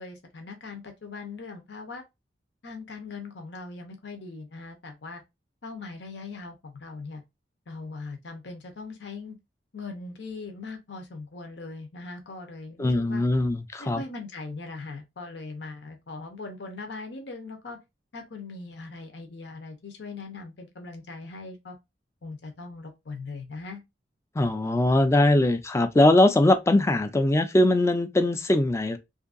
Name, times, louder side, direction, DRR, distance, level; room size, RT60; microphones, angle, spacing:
voice 1, 0.0-2.0 2.6-5.2 5.6-7.2 7.7-9.4 9.7-13.2 13.8-17.8 18.1-21.8 22.2-23.8, left 3 dB, 80° left, 0.8 m, -40 dB
voice 2, 12.8-14.0 24.4-29.0, left 1 dB, 15° left, 0.3 m, -21 dB
2.7 x 2.6 x 2.4 m
head